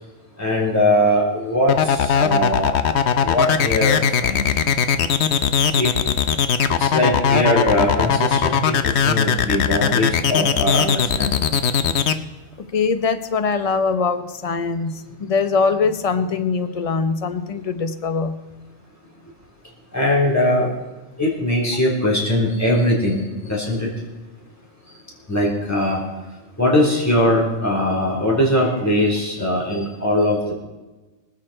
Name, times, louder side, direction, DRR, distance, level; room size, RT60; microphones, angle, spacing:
voice 1, 0.4-2.7 3.2-4.6 5.8-5.9 6.8-11.5 19.9-20.7 21.2-23.9 25.3-26.0 26.6-30.5, left 1 dB, 10° left, -4 dB, 3.9 m, -20 dB
sound 1, 1.7-12.1, left 7 dB, 60° left, 1.0 m, -19 dB
voice 2, 12.6-18.4, left 5 dB, 30° left, 10 dB, 0.9 m, -22 dB
25.0 x 8.7 x 4.4 m, 1.2 s
omnidirectional pair, 1.3 m